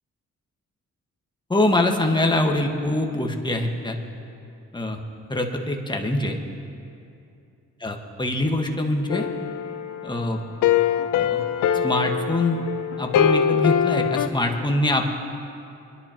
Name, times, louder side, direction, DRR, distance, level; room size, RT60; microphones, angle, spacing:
voice 1, 1.5-4.0 4.7-5.0 5.3-6.4 7.8-9.3 10.0-10.4 11.0-11.4 11.7-12.6 13.0-15.1, left 1 dB, 15° left, 2 dB, 1.5 m, -24 dB
sound 1, 9.1-14.3, left 9 dB, 85° left, 0.6 m, -23 dB
25.0 x 11.0 x 3.0 m, 2.7 s
cardioid pair, 75°, 30 cm